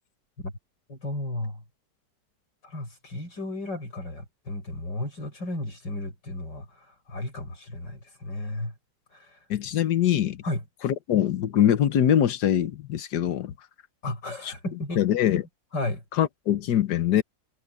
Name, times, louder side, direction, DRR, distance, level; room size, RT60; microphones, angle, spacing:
voice 1, 0.9-1.6 2.6-8.7 9.1-9.4 10.4-10.6 14.0-15.0 15.3-15.4 15.7-16.0, left 2 dB, 85° left, 6.8 m, -34 dB
voice 2, 9.5-10.4 10.8-13.5 14.4-14.5 15.0-15.4 16.2-17.2, left 10 dB, 70° left, 1.6 m, -23 dB
omnidirectional pair, 1.9 m